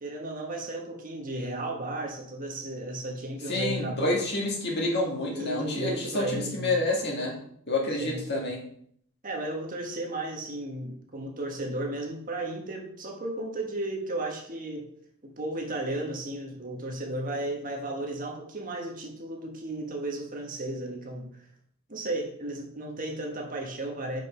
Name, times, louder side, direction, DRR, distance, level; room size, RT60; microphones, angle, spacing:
voice 1, 0.0-4.2 5.3-6.8 8.0-8.2 9.2-14.9 15.2-21.5 21.9-24.2, right 1 dB, 40° right, 1 dB, 1.4 m, -34 dB
voice 2, 3.5-7.4 7.7-8.6, left 2 dB, 50° left, -1 dB, 2.0 m, -28 dB
5.7 x 5.2 x 5.5 m, 0.67 s
head